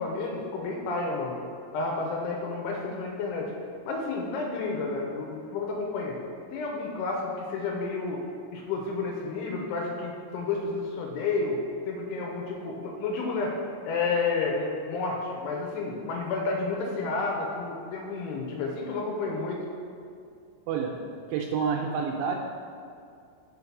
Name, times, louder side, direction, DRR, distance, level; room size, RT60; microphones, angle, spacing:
voice 1, 0.0-1.4 1.7-3.5 3.8-6.2 6.5-8.2 8.5-11.6 11.9-13.6 13.8-19.6, left 3 dB, 85° left, 0 dB, 3.0 m, -31 dB
voice 2, 20.7-21.0 21.3-22.4, right 6 dB, 85° right, 1 dB, 2.8 m, -28 dB
5.9 x 5.5 x 5.9 m, 2.3 s
omnidirectional pair, 5.7 m